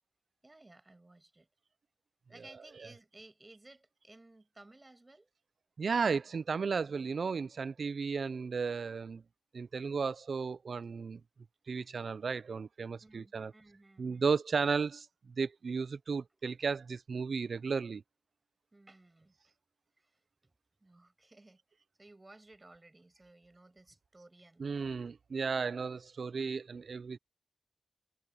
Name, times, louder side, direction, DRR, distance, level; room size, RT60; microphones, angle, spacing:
voice 1, 0.4-1.5 2.3-5.3 13.0-14.3 18.7-19.5 20.0-20.5 20.8-21.6 22.0-24.9, right 2 dB, 25° right, 6.8 m, -58 dB
voice 2, 2.3-2.7 5.8-9.2 9.5-11.2 11.7-13.5 14.0-18.0 24.6-27.2, right 5 dB, 65° right, 0.4 m, -34 dB
wide cardioid pair, 90°, 0 cm